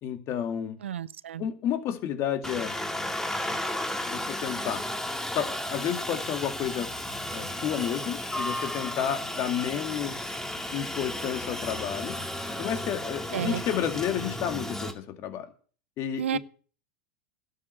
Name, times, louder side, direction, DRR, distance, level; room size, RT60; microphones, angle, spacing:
voice 1, 0.0-0.8 1.4-2.7 4.0-4.8 5.4-6.9 7.3-10.3 10.7-12.2 12.6-15.5 16.0-16.4, left 9 dB, 45° left, 2.2 m, -31 dB
voice 2, 0.8-1.5 13.3-13.6 16.2-16.4, right 10 dB, 90° right, 0.6 m, -31 dB
Aircraft, 2.4-14.9, left 1 dB, 5° left, 2.0 m, -34 dB
12.0 x 7.6 x 8.0 m
hypercardioid pair, 100°, 6 cm